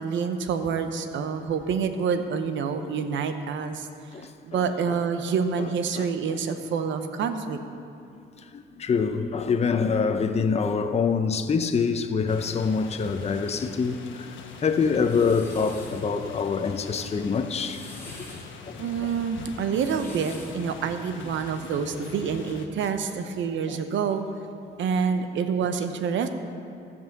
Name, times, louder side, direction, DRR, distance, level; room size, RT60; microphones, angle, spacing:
voice 1, 0.0-3.9 4.4-7.6 18.8-24.3 24.8-26.3, right 6 dB, 75° right, 0.8 m, -27 dB
voice 2, 4.1-5.0 5.6-5.7 5.9-6.4 8.4-17.9 18.3-18.4 18.7-18.8 23.7-23.8, left 5 dB, 30° left, 0.7 m, -26 dB
sound 1, 12.3-22.7, left 5 dB, 70° left, 1.1 m, -43 dB
sound 2, 14.7-16.0 17.4-18.5 19.6-20.7, left 2 dB, 10° left, 2.8 m, -45 dB
15.0 x 5.5 x 6.6 m
cardioid pair, 90°, 20 cm